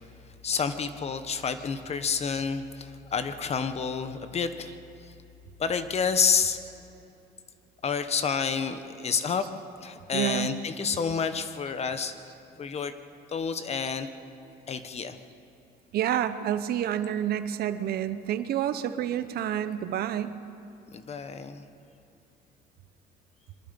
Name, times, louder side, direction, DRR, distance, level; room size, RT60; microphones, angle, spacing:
voice 1, 0.4-4.8 5.1-5.2 5.6-6.6 7.8-9.5 9.8-12.1 12.6-12.9 13.3-14.1 14.7-15.2 20.9-21.7, left 6 dB, 40° left, 10 dB, 1.2 m, -29 dB
voice 2, 10.1-10.6 15.9-20.4, right 10 dB, 65° right, 11 dB, 0.9 m, -29 dB
24.5 x 21.5 x 5.3 m, 2.7 s
cardioid pair, 110°, 17 cm